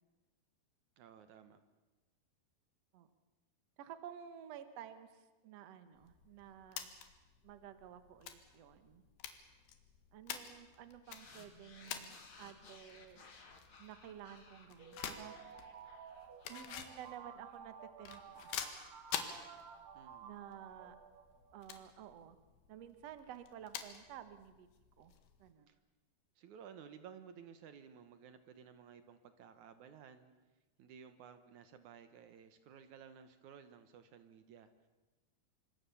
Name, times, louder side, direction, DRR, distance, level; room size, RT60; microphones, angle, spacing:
voice 1, 1.0-1.6 19.9-20.3 25.7-25.8 26.4-30.3 30.8-34.7, right 7 dB, 75° right, 10 dB, 1.8 m, -56 dB
voice 2, 3.8-6.9 7.4-9.0 10.1-13.3 13.8-15.3 16.5-18.6 20.2-21.0 21.5-22.4 22.7-24.7 25.0-25.1 25.4-25.7, right 10 dB, 90° right, 11 dB, 1.4 m, -52 dB
tape recorder buttons, 6.0-25.5, left 9 dB, 75° left, 3.8 m, -49 dB
sound 1, 11.0-17.6, left 4 dB, 35° left, 2.7 m, -60 dB
sound 2, 14.8-21.6, right 7 dB, 55° right, 2.1 m, -54 dB
26.0 x 25.0 x 7.0 m, 1.2 s
omnidirectional pair, 5.0 m